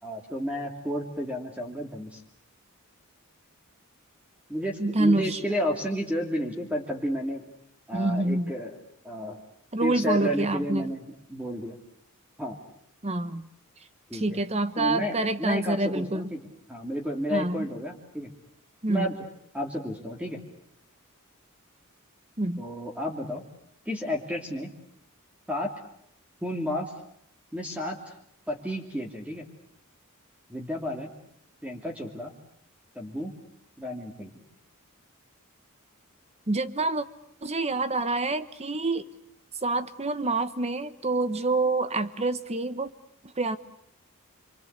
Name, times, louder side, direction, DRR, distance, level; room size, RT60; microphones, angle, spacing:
voice 1, 0.0-2.2 4.5-7.4 7.9-8.7 9.0-9.4 9.8-11.0 11.3-11.8 12.4-12.6 14.1-14.4 14.8-16.4 16.7-18.3 18.9-19.2 19.5-20.4 22.6-23.5 23.9-24.7 25.5-25.7 26.4-26.9 27.5-28.0 28.5-29.5 30.5-31.1 31.6-32.3 32.9-33.3 33.8-34.3, equal, 5° right, 1 dB, 2.8 m, -31 dB
voice 2, 4.8-5.4 7.9-8.5 9.7-10.9 13.0-13.5 14.1-16.3 17.3-17.7 18.8-19.1 22.4-22.6 36.5-37.0 37.4-39.1 39.6-42.9 43.4-43.6, right 2 dB, 30° right, 12 dB, 1.2 m, -27 dB
28.0 x 24.0 x 8.2 m, 0.71 s
head